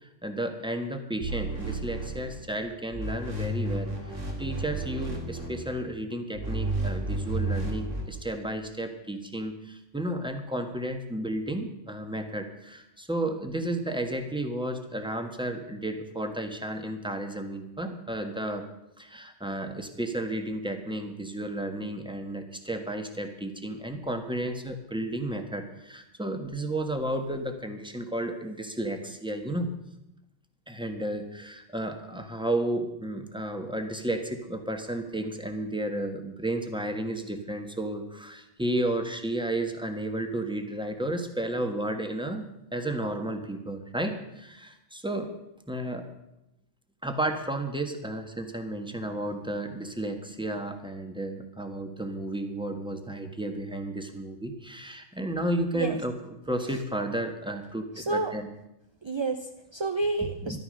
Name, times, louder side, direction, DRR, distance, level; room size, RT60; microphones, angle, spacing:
voice 1, 0.0-18.7 19.0-29.7 30.7-45.3 45.7-46.1 47.0-56.1 56.5-58.5 60.4-60.6, right 1 dB, 5° right, 5 dB, 1.4 m, -32 dB
sound 1, 1.2-2.6 2.9-5.8 6.3-8.1, right 2 dB, 85° right, 3.1 m, -32 dB
voice 2, 58.0-58.3 59.0-60.6, right 3 dB, 30° right, 6 dB, 0.6 m, -29 dB
13.5 x 12.0 x 6.4 m, 0.86 s
omnidirectional pair, 1.3 m